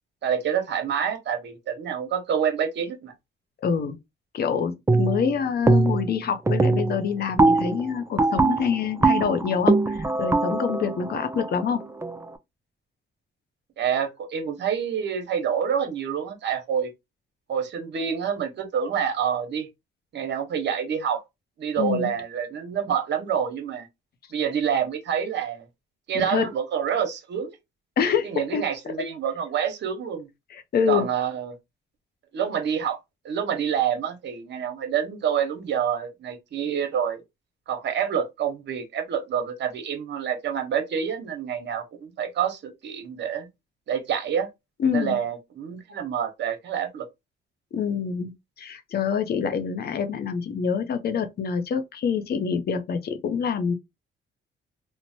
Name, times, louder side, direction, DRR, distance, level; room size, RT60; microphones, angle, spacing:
voice 1, 0.2-3.1 13.8-16.9 17.5-19.7 20.1-21.2 21.6-23.9 24.3-25.6 26.1-27.6 28.2-30.3 30.9-31.6 32.3-33.0 33.2-37.2 37.7-43.5 43.9-44.5 44.9-47.1, right 8 dB, 60° right, 0.9 m, -27 dB
voice 2, 3.6-4.0 4.3-11.8 21.8-22.1 26.1-26.5 28.0-28.9 30.5-31.1 44.8-45.2 47.7-48.3 48.6-53.7, left 6 dB, 55° left, 0.6 m, -26 dB
sound 1, 4.9-5.3 5.7-6.1 6.5-12.3, right 3 dB, 15° right, 0.4 m, -22 dB
3.0 x 2.1 x 2.6 m
cardioid pair, 90°, 20 cm